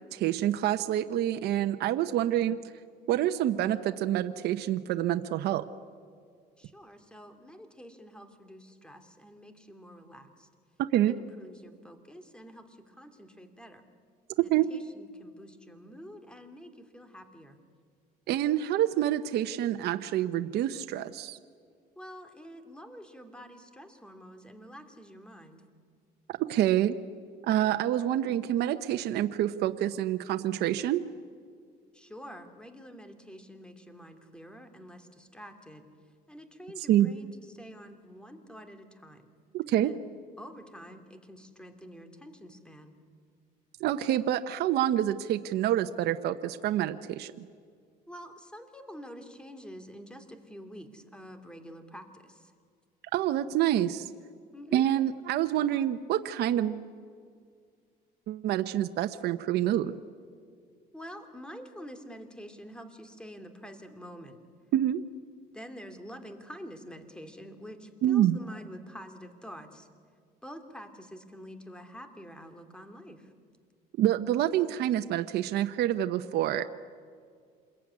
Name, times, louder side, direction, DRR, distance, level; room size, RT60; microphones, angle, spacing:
voice 1, 0.1-2.6 3.1-5.6 10.8-11.2 14.4-14.7 18.3-21.4 26.3-27.0 27.5-31.0 36.9-37.1 39.5-39.9 43.8-47.3 53.1-54.1 54.7-56.8 58.3-59.9 64.7-65.0 68.0-68.4 74.0-76.7, right 12 dB, 75° right, 8 dB, 0.9 m, -27 dB
voice 2, 6.6-10.5 11.1-13.8 14.4-17.6 22.0-25.6 31.9-35.8 36.3-39.3 39.8-40.0 40.4-42.9 48.1-52.5 54.5-54.8 60.9-64.4 65.5-69.9 70.4-73.3, equal, 5° left, 7 dB, 2.8 m, -47 dB
27.0 x 21.5 x 9.8 m, 2.1 s
cardioid pair, 110°, 17 cm